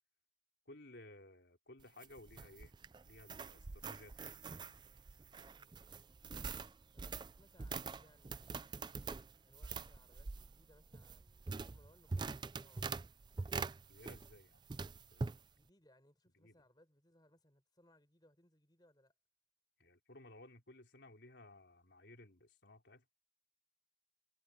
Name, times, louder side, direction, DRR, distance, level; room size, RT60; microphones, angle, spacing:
voice 1, 0.7-2.7 3.1-4.3 13.9-14.6 15.1-15.4 16.3-16.6 19.8-23.0, left 1 dB, 70° left, 3.8 m, -58 dB
sound 1, 1.8-14.4 14.7-15.4, right 4 dB, 25° right, 0.3 m, -44 dB
voice 2, 6.9-8.8 9.4-13.1 15.5-19.1, left 1 dB, 20° left, 4.6 m, -69 dB
head